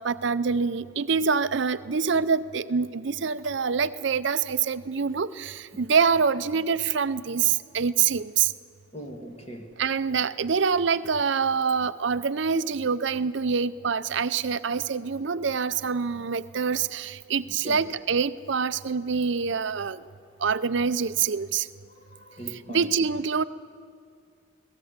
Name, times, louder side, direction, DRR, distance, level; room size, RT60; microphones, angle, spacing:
voice 1, 0.0-8.5 9.8-20.0 20.4-21.7 22.7-23.4, right 6 dB, 60° right, 14 dB, 0.5 m, -25 dB
voice 2, 8.9-9.7 17.5-17.8 21.9-22.8, equal, 30° left, 1 dB, 1.6 m, -41 dB
24.5 x 17.5 x 8.1 m, 2.4 s
head